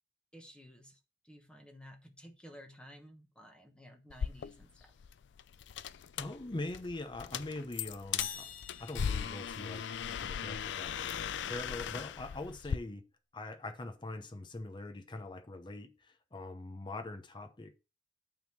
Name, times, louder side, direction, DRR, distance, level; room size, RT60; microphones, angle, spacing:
voice 1, 0.3-1.0 1.2-4.9, equal, 5° left, 1.1 m, -54 dB
sound 1, 4.1-12.8, left 7 dB, 70° left, 0.4 m, -39 dB
voice 2, 6.2-8.5 8.8-13.0 13.3-17.7, left 2 dB, 25° left, 0.8 m, -43 dB
sound 2, 8.2-10.1, left 7 dB, 50° left, 1.0 m, -45 dB
9.0 x 3.7 x 5.9 m
head